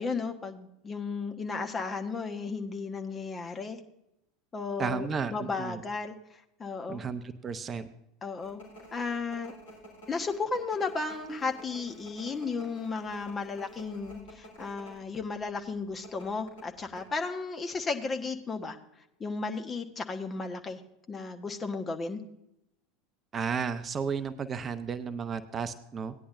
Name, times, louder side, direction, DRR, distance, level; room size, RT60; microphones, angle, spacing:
voice 1, 0.0-3.8 4.5-6.1 6.6-7.0 8.2-8.6 8.9-9.5 10.1-18.8 19.2-20.8 21.1-22.2, left 4 dB, 25° left, 5 dB, 1.2 m, -34 dB
voice 2, 4.8-5.8 6.9-7.9 23.3-26.1, right 6 dB, 30° right, 11 dB, 0.7 m, -33 dB
sound 1, 8.4-15.0 15.3-15.5 16.0-17.0, equal, 65° left, 3.6 m, -50 dB
17.0 x 10.0 x 2.5 m, 0.83 s
figure-of-eight pair, 75°, 0 cm